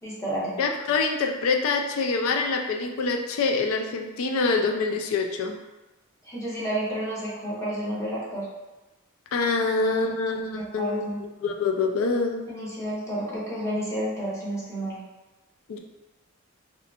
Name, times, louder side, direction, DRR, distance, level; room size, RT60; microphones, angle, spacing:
voice 1, 0.0-0.6 6.2-8.5 9.6-9.7 10.0-10.1 10.5-11.2 12.5-15.0, right 1 dB, 15° left, -8 dB, 0.8 m, -31 dB
voice 2, 0.6-5.6 9.3-11.0 11.4-12.4 15.7-15.8, left 4 dB, 70° left, 3 dB, 0.3 m, -25 dB
2.7 x 2.4 x 2.3 m, 1.1 s
head